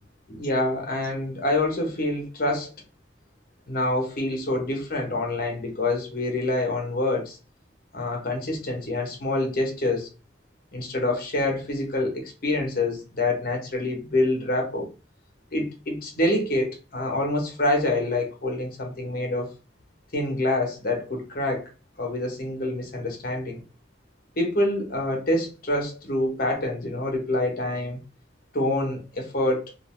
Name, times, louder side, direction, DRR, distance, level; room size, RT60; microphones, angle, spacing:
voice 1, 0.3-2.7 3.7-7.4 7.9-10.1 10.7-14.9 15.5-19.5 20.1-21.7 22.0-23.6 24.4-28.0 28.5-29.6, left 2 dB, 50° left, 0.9 m, -26 dB
2.6 x 2.1 x 3.1 m
head